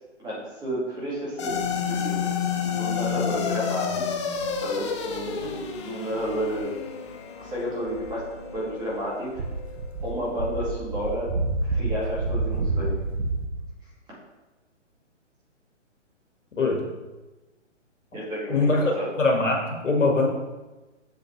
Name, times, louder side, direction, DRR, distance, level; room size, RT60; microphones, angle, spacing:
voice 1, 0.2-2.3 2.8-4.2 4.6-5.5 5.8-6.7 7.4-8.2 8.5-9.4 10.0-11.3 11.6-12.9 18.1-19.1, equal, 10° right, -7 dB, 2.1 m, -31 dB
sound 1, 1.4-9.9, left 7 dB, 25° left, 0.5 m, -30 dB
sound 2, 7.8-8.9 9.3-13.5, right 3 dB, 60° right, 1.1 m, -28 dB
voice 2, 18.5-19.6 19.8-20.3, left 3 dB, 80° left, 0 dB, 2.0 m, -22 dB
7.3 x 6.7 x 3.3 m, 1.1 s
hypercardioid pair, 145°, 37 cm